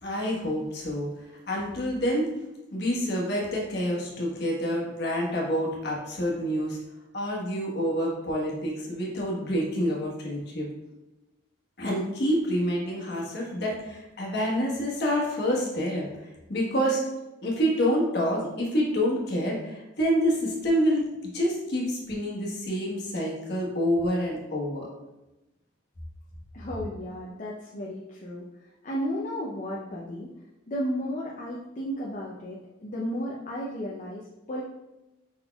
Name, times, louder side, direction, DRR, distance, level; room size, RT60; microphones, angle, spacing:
voice 1, 0.0-2.3 2.7-6.8 7.1-10.7 11.8-17.0 17.4-21.1 21.3-24.9, equal, 55° left, -3 dB, 1.2 m, -27 dB
voice 2, 26.5-30.3 30.7-34.6, equal, 40° left, -4 dB, 0.5 m, -34 dB
5.3 x 4.1 x 2.3 m, 1.0 s
head